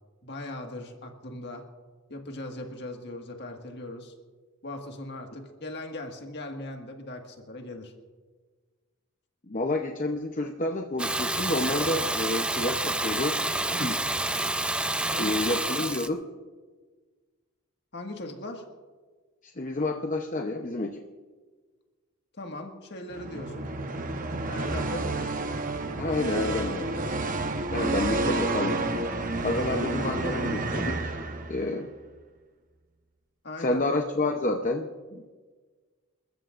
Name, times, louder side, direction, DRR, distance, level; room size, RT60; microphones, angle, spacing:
voice 1, 0.2-1.7 2.1-4.1 4.6-7.9 15.1-15.4 15.8-15.9 17.9-18.7 22.4-23.7 24.5-25.5 33.4-33.9, left 1 dB, 50° left, 3 dB, 1.8 m, -39 dB
voice 2, 9.5-13.4 13.7-14.0 15.2-16.2 19.4-21.0 26.0-26.9 27.7-28.8 29.4-31.1 31.5-31.9 33.6-35.3, left 2 dB, 35° left, 3 dB, 0.8 m, -29 dB
Water tap faucet / Bathtub (filling or washing), 11.0-16.1, right 2 dB, 5° right, 0.4 m, -28 dB
sound 1, 23.1-31.8, right 2 dB, 40° right, 1.0 m, -30 dB
28.0 x 14.0 x 2.5 m, 1.4 s
head